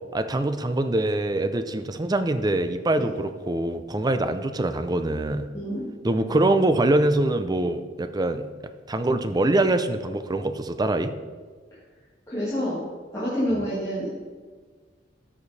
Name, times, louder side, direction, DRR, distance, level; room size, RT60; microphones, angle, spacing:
voice 1, 0.1-5.5 6.0-8.4 8.9-11.1, right 2 dB, 20° right, 10 dB, 0.5 m, -24 dB
voice 2, 5.5-5.9 12.3-12.8 13.1-14.2, equal, 15° left, -10 dB, 2.1 m, -27 dB
13.5 x 5.0 x 4.1 m, 1.5 s
head